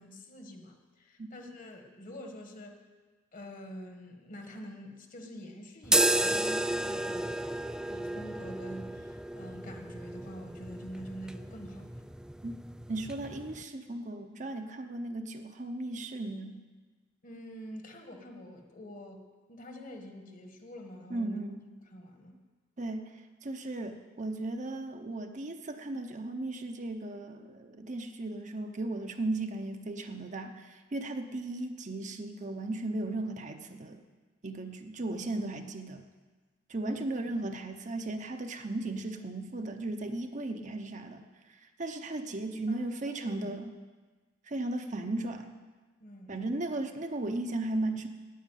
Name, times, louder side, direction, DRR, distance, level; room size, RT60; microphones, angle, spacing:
voice 1, 0.0-2.8 3.3-7.3 7.9-12.0 17.2-21.4 21.9-22.4 36.8-37.1 42.7-42.9 43.2-43.5 46.0-46.4, equal, 45° left, 4 dB, 1.5 m, -46 dB
sound 1, 5.8-13.6, right 1 dB, 5° right, 0.3 m, -32 dB
voice 2, 12.9-16.7 21.1-21.6 22.8-34.0 34.4-36.0 36.7-41.2 41.5-43.7 44.5-45.6 46.3-48.1, right 2 dB, 40° right, 6 dB, 0.8 m, -36 dB
9.4 x 8.5 x 9.1 m, 1.3 s
head